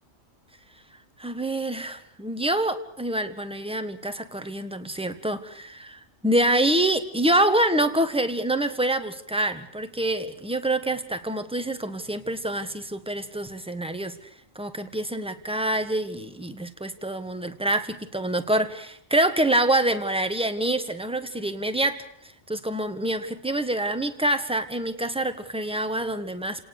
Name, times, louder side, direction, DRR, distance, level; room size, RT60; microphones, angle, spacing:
voice 1, 1.2-14.3 14.5-26.6, right 1 dB, 5° right, 8 dB, 1.4 m, -26 dB
30.0 x 18.5 x 6.7 m, 0.69 s
omnidirectional pair, 1.4 m